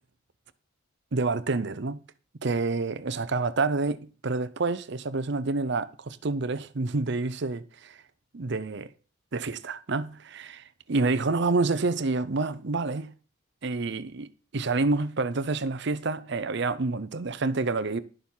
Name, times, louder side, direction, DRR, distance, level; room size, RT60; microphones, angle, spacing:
voice 1, 1.1-2.0 2.4-8.0 8.3-8.9 9.3-13.1 13.6-18.0, right 3 dB, 55° right, 0.7 m, -28 dB
11.0 x 6.8 x 5.6 m
head